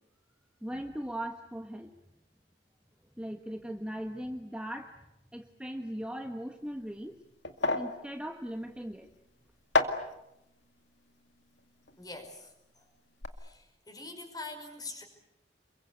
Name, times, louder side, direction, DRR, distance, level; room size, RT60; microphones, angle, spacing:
voice 1, 0.6-1.9 3.2-4.9 5.3-7.2 7.7-9.1, equal, 5° right, 4 dB, 1.2 m, -39 dB
sound 1, 6.5-12.7 13.0-13.3, left 2 dB, 85° left, 2.2 m, -34 dB
voice 2, 12.0-12.9 13.4-15.0, left 2 dB, 20° left, 6 dB, 5.2 m, -44 dB
28.0 x 23.0 x 8.2 m, 0.87 s
head